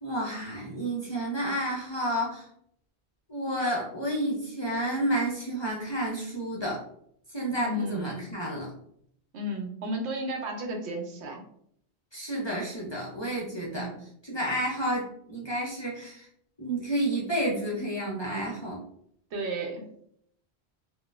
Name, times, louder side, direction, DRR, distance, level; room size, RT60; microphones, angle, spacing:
voice 1, 0.0-2.5 3.3-6.8 7.3-8.7 12.1-13.9 14.2-16.3 16.6-18.8, right 1 dB, 35° left, -3 dB, 0.5 m, -30 dB
voice 2, 7.6-8.3 9.3-11.4 13.7-14.0 19.3-19.8, right 1 dB, 85° right, 3 dB, 1.0 m, -33 dB
4.0 x 2.2 x 2.3 m, 0.68 s
omnidirectional pair, 1.1 m